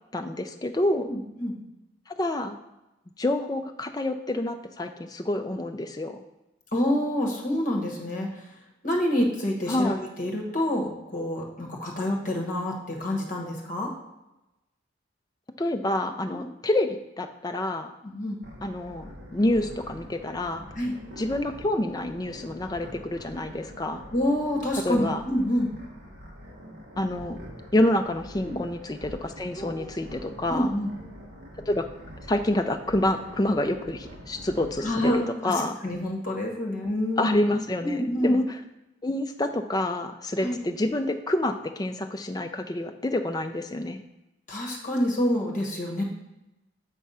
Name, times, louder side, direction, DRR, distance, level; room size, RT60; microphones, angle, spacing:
voice 1, 0.1-1.1 2.1-2.6 3.2-6.2 9.7-10.0 15.6-17.9 18.6-20.6 21.2-24.0 24.8-25.2 27.0-27.4 27.7-30.7 31.7-31.9 32.3-35.8 37.2-38.6 39.0-44.0, left 1 dB, 20° left, 6 dB, 0.4 m, -27 dB
voice 2, 1.1-1.6 6.7-8.5 8.8-13.9 16.3-16.5 18.0-18.4 20.7-20.9 24.1-25.7 28.4-28.6 29.5-29.9 30.5-30.9 34.8-37.4 37.8-38.4 40.4-40.6 44.5-46.0, left 1 dB, 40° left, 0 dB, 1.2 m, -27 dB
sound 1, 18.4-35.2, equal, 60° right, 1.1 m, -45 dB
7.5 x 3.5 x 5.5 m, 0.97 s
head